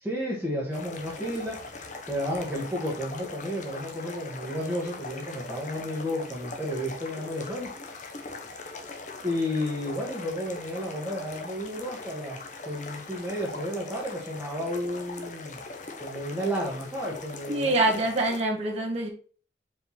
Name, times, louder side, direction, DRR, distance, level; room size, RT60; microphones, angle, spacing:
voice 1, 0.0-7.7 8.4-8.8 9.2-15.6 16.0-18.0, equal, 10° right, -6 dB, 1.6 m, -32 dB
sound 1, 0.7-18.4, left 3 dB, 40° left, 1.1 m, -41 dB
voice 2, 17.5-19.1, right 2 dB, 35° right, -2 dB, 1.7 m, -25 dB
5.1 x 4.9 x 5.6 m, 0.42 s
head